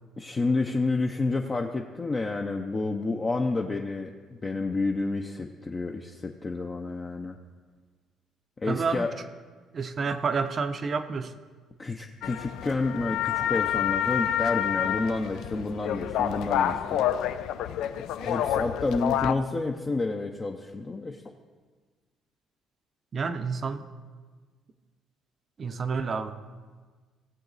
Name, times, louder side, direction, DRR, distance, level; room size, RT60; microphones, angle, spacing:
voice 1, 0.2-7.4 8.6-9.1 10.1-10.2 11.8-17.1 18.2-21.3, left 3 dB, 20° left, 2 dB, 0.6 m, -30 dB
voice 2, 8.7-9.0 9.7-11.3 23.1-23.8 25.6-26.3, right 5 dB, 35° right, 9 dB, 0.7 m, -29 dB
sound 1, 12.2-19.3, left 10 dB, 70° left, 0.5 m, -28 dB
18.0 x 7.2 x 4.0 m, 1.5 s
cardioid pair, 145°, 0 cm